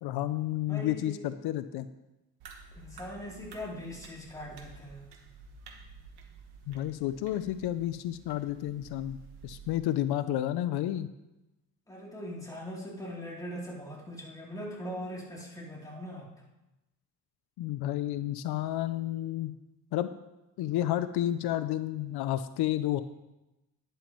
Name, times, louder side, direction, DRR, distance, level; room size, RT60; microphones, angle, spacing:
voice 1, 0.0-1.9 6.7-9.2 9.4-11.1 17.6-19.6 19.9-20.1 20.6-23.0, left 13 dB, 85° left, 12 dB, 0.5 m, -31 dB
voice 2, 0.7-1.3 2.7-5.0 11.9-16.3, equal, 10° left, -4 dB, 3.1 m, -41 dB
sound 1, 2.4-9.8, right 4 dB, 85° right, 1.4 m, -51 dB
11.5 x 10.5 x 3.1 m, 0.98 s
cardioid pair, 95°, 38 cm